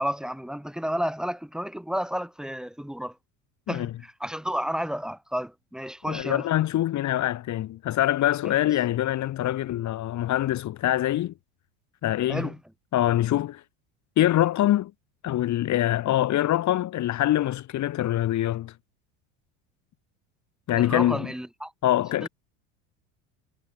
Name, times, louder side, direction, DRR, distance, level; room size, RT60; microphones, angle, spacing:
voice 1, 0.0-3.1 3.7-6.4 12.3-12.6 20.8-21.7 22.2-22.3, equal, ahead, 5.2 m, -31 dB
voice 2, 6.1-11.3 12.0-12.5 12.9-13.6 14.2-14.9 15.2-18.7 20.7-21.3 21.8-22.3, left 13 dB, 45° left, 3.6 m, -24 dB
supercardioid pair, 105°, 39 cm